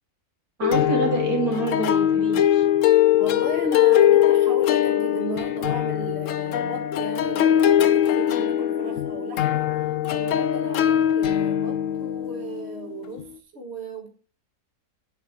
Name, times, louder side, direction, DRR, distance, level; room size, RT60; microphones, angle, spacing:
sound 1, 0.6-13.2, left 11 dB, 65° left, 0.9 m, -21 dB
voice 1, 0.6-2.6, right 3 dB, 70° right, 0 dB, 3.1 m, -26 dB
voice 2, 3.2-14.1, right 2 dB, 45° right, 3 dB, 1.7 m, -36 dB
8.4 x 7.6 x 4.7 m, 0.36 s
omnidirectional pair, 1.6 m